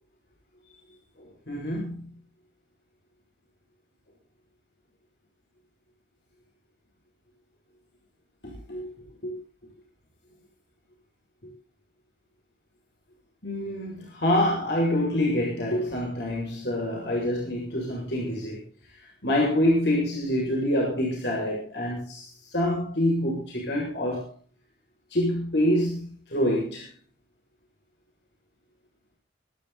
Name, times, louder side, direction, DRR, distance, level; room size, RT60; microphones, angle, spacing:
voice 1, 1.2-2.0 8.4-8.9 9.2-9.4 11.4-11.5 13.4-18.7 19.2-24.3 25.1-26.9, left 1 dB, 65° left, -3 dB, 7.2 m, -26 dB
25.5 x 11.5 x 4.3 m, 0.37 s
head